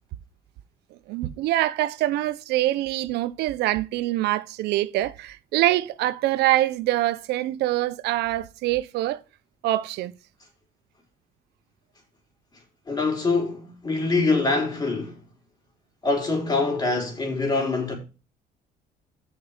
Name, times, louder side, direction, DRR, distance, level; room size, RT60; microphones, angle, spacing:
voice 1, 1.1-9.2 9.6-10.1, right 15 dB, 80° right, 0.7 m, -24 dB
voice 2, 12.9-15.2 16.0-18.0, left 3 dB, 25° left, 4.0 m, -24 dB
6.8 x 5.6 x 7.2 m
cardioid pair, 110°, 17 cm